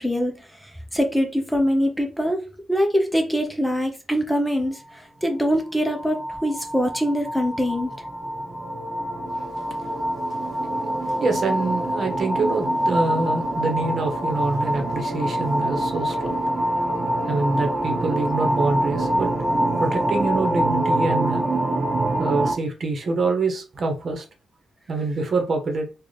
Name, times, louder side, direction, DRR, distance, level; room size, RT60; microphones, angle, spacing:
voice 1, 0.0-2.4 2.7-7.9, equal, 5° left, 0.7 m, -23 dB
sound 1, 5.6-22.5, right 1 dB, 35° right, 0.6 m, -25 dB
voice 2, 11.0-16.7 17.3-21.6 22.2-24.2 24.9-25.9, right 3 dB, 55° right, 1.0 m, -26 dB
3.9 x 2.4 x 3.3 m
cardioid pair, 100°, 0 cm